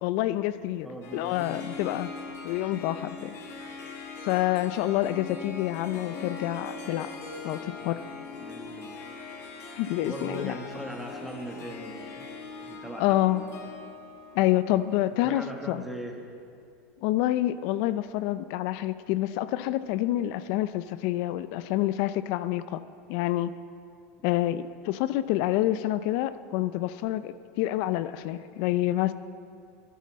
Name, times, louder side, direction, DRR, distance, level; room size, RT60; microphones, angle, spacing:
voice 1, 0.0-2.1 2.4-3.4 4.2-7.1 7.4-8.0 9.7-10.6 13.0-13.4 14.4-15.8 17.0-22.8 23.1-23.5 24.2-29.1, left 14 dB, 55° left, 14 dB, 0.4 m, -27 dB
voice 2, 0.8-1.7 7.8-7.9 8.4-9.1 10.0-12.3 12.6-13.5 15.2-16.2 24.2-24.3, right 1 dB, ahead, 0 dB, 1.4 m, -40 dB
Harp, 1.0-15.5, left 4 dB, 35° left, 1.3 m, -41 dB
13.0 x 11.0 x 4.2 m, 2.3 s
supercardioid pair, 135°, 8 cm